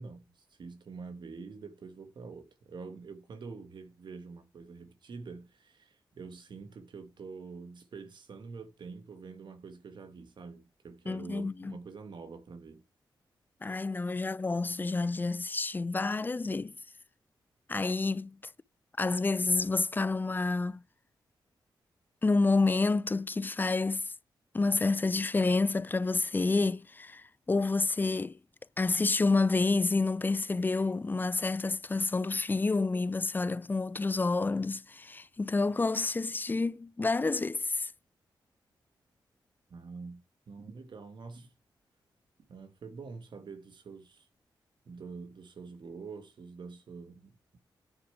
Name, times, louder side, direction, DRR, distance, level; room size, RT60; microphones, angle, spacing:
voice 1, 0.0-12.8 39.7-41.5 42.5-44.3 44.9-47.6, right 4 dB, 65° right, 1.4 m, -46 dB
voice 2, 11.1-11.7 13.6-16.7 17.7-18.3 19.0-20.8 22.2-24.1 24.5-28.4 28.8-37.9, left 3 dB, 25° left, 0.4 m, -29 dB
9.8 x 4.9 x 4.7 m
cardioid pair, 65°, 9 cm